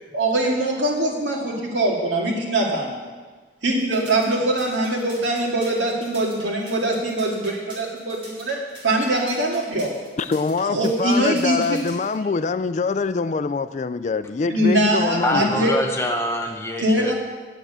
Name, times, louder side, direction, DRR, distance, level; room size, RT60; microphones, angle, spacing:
voice 1, 0.1-3.0 3.6-8.6 8.8-9.9 10.6-11.8 14.5-15.7 16.8-17.1, right 1 dB, 90° right, -1 dB, 2.2 m, -22 dB
sound 1, 3.8-12.1, right 1 dB, 30° right, 3.7 m, -43 dB
voice 2, 10.2-15.7, left 4 dB, 40° left, 13 dB, 0.3 m, -24 dB
voice 3, 15.2-17.1, left 1 dB, 15° left, 2 dB, 1.0 m, -25 dB
8.9 x 7.3 x 8.0 m, 1.4 s
head